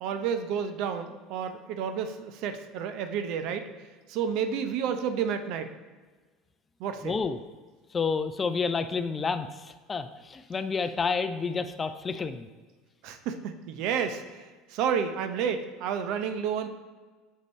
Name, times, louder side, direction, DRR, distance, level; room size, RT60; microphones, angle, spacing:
voice 1, 0.0-3.7 4.1-5.7 6.8-7.1 13.0-16.7, right 7 dB, 60° right, 8 dB, 0.6 m, -30 dB
voice 2, 7.0-7.4 7.9-12.5, left 5 dB, 30° left, 10 dB, 0.5 m, -30 dB
6.4 x 5.2 x 4.1 m, 1.4 s
hypercardioid pair, 75°, 0 cm